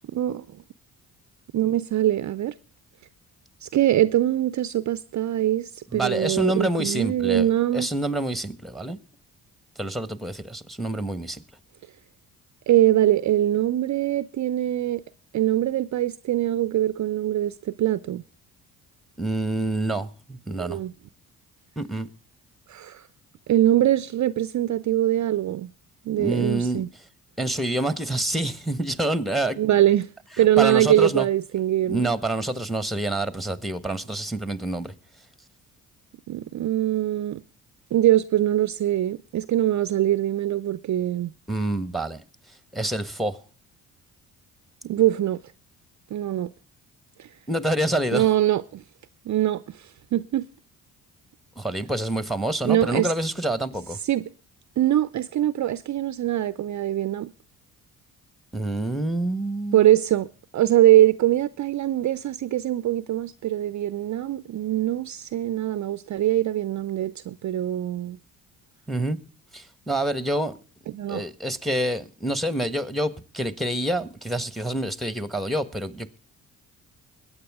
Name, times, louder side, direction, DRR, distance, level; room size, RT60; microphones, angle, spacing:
voice 1, 0.1-0.4 1.5-2.5 3.6-7.9 12.7-15.0 15.3-18.2 20.6-20.9 22.7-23.0 23.5-25.7 26.1-26.9 29.6-30.1 30.4-32.1 36.3-37.4 37.9-41.3 44.8-45.4 46.1-46.5 47.2-47.3 48.1-48.8 49.3-50.5 52.6-53.1 54.0-54.3 54.8-57.3 59.7-60.3 60.5-68.2 70.9-71.2, right 13 dB, 45° right, 0.6 m, -23 dB
voice 2, 5.9-9.0 9.8-11.4 19.2-20.8 21.8-22.1 26.2-26.8 27.4-29.6 30.4-31.3 31.9-34.9 41.5-42.2 42.7-43.4 47.5-48.3 51.6-54.0 58.5-59.9 68.9-69.2 69.5-70.5 71.1-76.2, right 1 dB, ahead, 1.3 m, -27 dB
21.5 x 8.9 x 3.6 m
hypercardioid pair, 50°, 42 cm